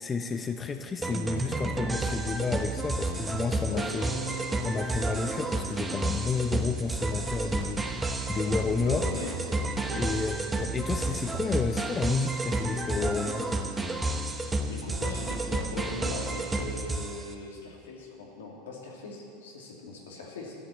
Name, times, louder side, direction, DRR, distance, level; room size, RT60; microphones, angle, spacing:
voice 1, 0.0-4.1 4.6-7.9 8.3-9.1 9.9-13.5, left 4 dB, 20° left, 7 dB, 0.7 m, -31 dB
sound 1, 1.0-17.3, right 2 dB, 15° right, 1.1 m, -31 dB
voice 2, 3.7-4.6 8.8-9.4 9.8-10.0 14.7-20.6, left 3 dB, 90° left, -2 dB, 2.8 m, -40 dB
13.0 x 6.8 x 9.9 m, 2.6 s
hypercardioid pair, 105°, 0 cm